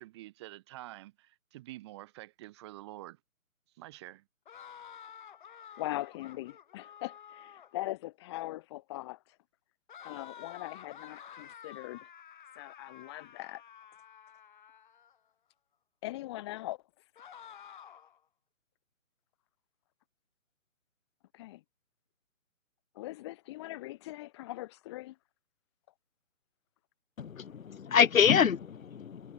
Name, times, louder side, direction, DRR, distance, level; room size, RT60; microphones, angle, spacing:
voice 1, 0.0-3.2 3.8-4.2, right 17 dB, 20° right, 3.8 m, -47 dB
sound 1, 4.5-7.9 9.9-15.2 17.2-18.2, left 8 dB, 35° left, 4.0 m, -51 dB
voice 2, 5.8-9.4 10.0-12.1 12.6-13.6 16.0-16.8 21.3-21.6 22.9-25.2, left 17 dB, 20° left, 3.8 m, -41 dB
voice 3, 27.2-29.3, left 7 dB, 75° left, 1.0 m, -26 dB
hypercardioid pair, 170°, 41 cm